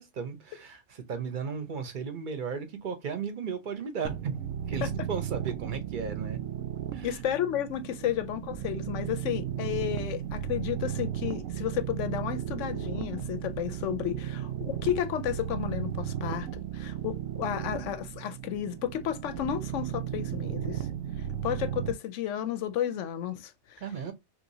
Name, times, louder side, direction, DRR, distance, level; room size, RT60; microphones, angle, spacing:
voice 1, 0.0-4.4 4.7-6.4 6.9-7.2 8.0-8.1 23.8-24.1, right 6 dB, 45° right, 0.7 m, -35 dB
sound 1, 4.0-21.9, right 10 dB, 80° right, 0.9 m, -35 dB
voice 2, 7.0-20.9 21.4-23.8, left 10 dB, 70° left, 0.9 m, -32 dB
3.1 x 2.6 x 2.6 m
omnidirectional pair, 1.4 m